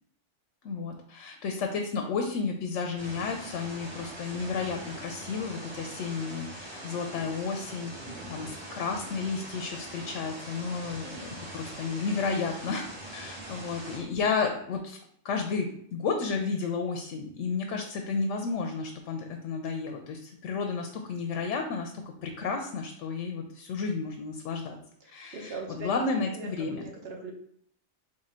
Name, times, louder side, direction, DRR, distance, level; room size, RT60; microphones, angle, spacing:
voice 1, 0.6-12.9 13.1-15.0 15.2-24.8 25.1-26.9, left 4 dB, 85° left, 3 dB, 0.9 m, -32 dB
sound 1, 3.0-14.0, right 1 dB, 20° right, 2.0 m, -42 dB
voice 2, 25.0-27.3, right 3 dB, 60° right, 2 dB, 1.0 m, -42 dB
3.7 x 3.3 x 4.2 m, 0.67 s
omnidirectional pair, 1.2 m